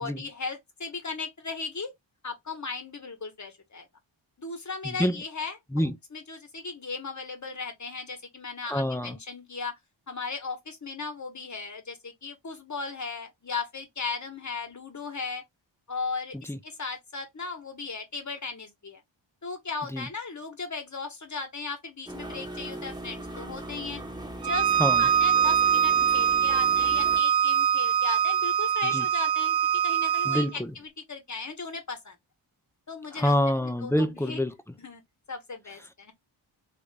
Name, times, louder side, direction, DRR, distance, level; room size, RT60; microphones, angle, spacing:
voice 1, 0.0-1.9 2.2-3.9 4.4-9.8 10.1-15.4 15.9-19.0 19.4-24.0 24.4-24.7 25.0-29.5 29.8-32.1 32.9-33.3 33.8-34.4 34.8-35.0 35.3-36.1, left 4 dB, 40° left, 1.1 m, -36 dB
voice 2, 4.8-5.2 5.7-6.0 8.7-9.2 16.5-16.6 19.9-20.1 24.8-25.1 28.8-29.1 30.2-30.7 33.1-34.6, left 1 dB, 5° left, 0.4 m, -26 dB
sound 1, 22.1-27.2, right 1 dB, 10° right, 0.9 m, -39 dB
Bowed string instrument, 24.4-30.5, right 8 dB, 55° right, 0.6 m, -23 dB
3.2 x 2.5 x 3.2 m
wide cardioid pair, 105°, 47 cm